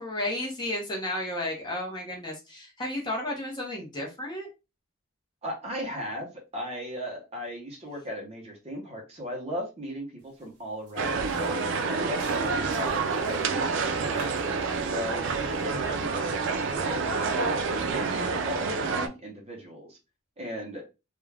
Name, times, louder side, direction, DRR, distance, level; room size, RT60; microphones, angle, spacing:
voice 1, 0.0-4.5, left 1 dB, 20° left, -1 dB, 0.7 m, -33 dB
voice 2, 5.4-14.3 14.8-20.0 20.4-20.8, equal, 30° right, 0 dB, 0.7 m, -37 dB
sound 1, 10.2-10.5 10.9-18.5, right 3 dB, 85° right, 0.7 m, -48 dB
sound 2, 11.0-19.1, right 4 dB, 55° right, 0.4 m, -28 dB
2.4 x 2.2 x 3.2 m, 0.28 s
head